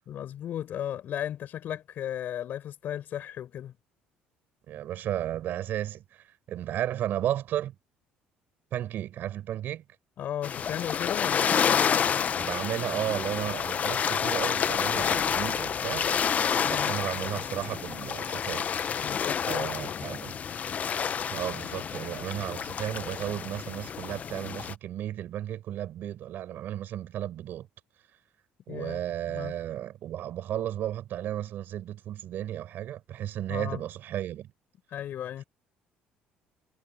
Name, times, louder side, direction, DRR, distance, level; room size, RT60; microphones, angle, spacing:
voice 1, 0.1-3.7 10.2-12.2 16.6-16.9 19.0-20.1 28.7-29.0 29.3-29.5 33.5-33.8 34.9-35.4, left 10 dB, 60° left, 5.3 m, -36 dB
voice 2, 4.7-7.7 8.7-9.8 12.4-16.1 16.7-18.7 19.4-20.4 21.3-27.7 28.7-34.5, right 12 dB, 65° right, 7.2 m, -34 dB
sound 1, 10.4-24.7, left 7 dB, 45° left, 1.0 m, -29 dB
supercardioid pair, 90°, 4 cm